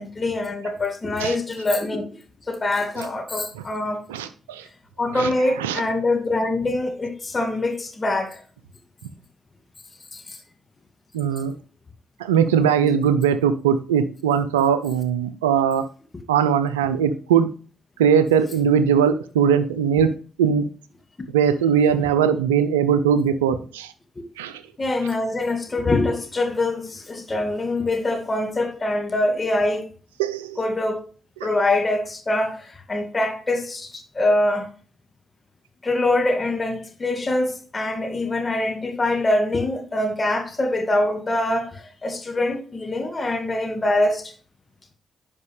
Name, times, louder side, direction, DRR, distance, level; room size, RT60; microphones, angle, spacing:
voice 1, 0.0-2.1 2.5-4.0 5.0-8.4 10.1-10.4 24.8-29.9 30.6-31.0 31.4-34.7 35.8-44.3, left 2 dB, 30° left, 2.1 m, -24 dB
voice 2, 4.1-4.6 5.1-5.3 5.6-5.8 11.1-11.5 12.2-15.8 16.3-17.5 18.0-20.1 20.4-20.7 21.3-23.9 24.4-24.6 30.2-30.6 31.4-31.5, right 7 dB, 90° right, 0.5 m, -20 dB
10.5 x 5.2 x 3.3 m
hypercardioid pair, 45°, 0 cm